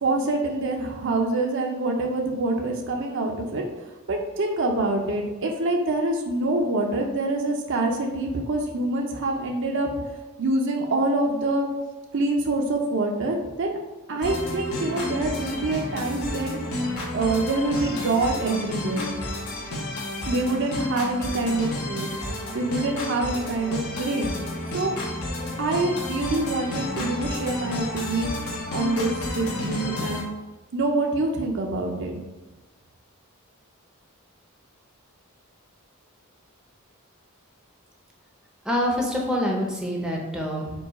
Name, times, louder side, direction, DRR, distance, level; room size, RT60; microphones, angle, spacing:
voice 1, 0.0-3.6 4.1-9.9 10.4-11.7 12.1-13.8 14.1-16.6 17.1-19.2 20.2-22.1 22.5-24.4 24.7-25.0 25.6-28.3 28.7-30.3 30.7-32.2, right 2 dB, 60° right, 1 dB, 0.6 m, -25 dB
sound 1, 14.2-30.2, left 1 dB, 80° left, 1.1 m, -31 dB
voice 2, 38.7-40.7, equal, 5° right, -2 dB, 0.6 m, -26 dB
4.6 x 2.3 x 4.1 m, 1.1 s
head